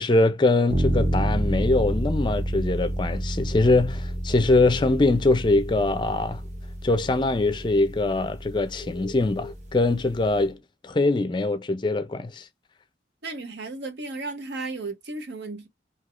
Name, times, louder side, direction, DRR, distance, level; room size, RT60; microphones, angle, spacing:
voice 1, 0.0-6.4 6.8-12.5, left 2 dB, 25° left, 0.4 m, -23 dB
sound 1, 0.7-10.4, right 1 dB, 40° right, 0.8 m, -29 dB
sound 2, 4.1-7.3 7.5-10.5, left 3 dB, 10° right, 1.4 m, -45 dB
voice 2, 13.2-15.7, right 3 dB, 75° right, 0.8 m, -34 dB
3.2 x 2.8 x 2.4 m
head